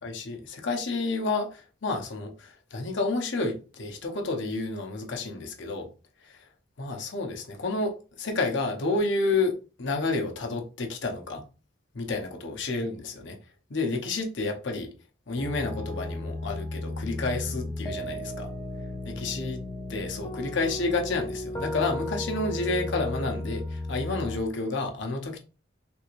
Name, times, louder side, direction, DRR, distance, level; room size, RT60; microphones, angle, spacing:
voice 1, 0.0-5.9 6.2-6.4 6.8-11.4 11.9-13.4 13.7-14.9 15.3-18.5 19.0-19.6 19.9-25.4, left 3 dB, 65° left, 0.7 m, -30 dB
sound 1, 15.4-24.4, left 1 dB, 15° left, 0.5 m, -34 dB
3.4 x 3.0 x 2.5 m
head